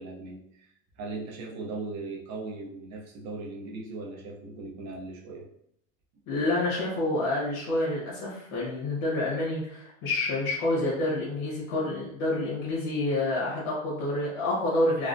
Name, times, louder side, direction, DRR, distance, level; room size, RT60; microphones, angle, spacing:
voice 1, 0.0-5.5, right 3 dB, 40° right, -2 dB, 0.6 m, -38 dB
voice 2, 6.3-15.1, left 2 dB, 70° left, -6 dB, 1.3 m, -28 dB
3.3 x 2.1 x 2.5 m, 0.73 s
supercardioid pair, 150°, 43 cm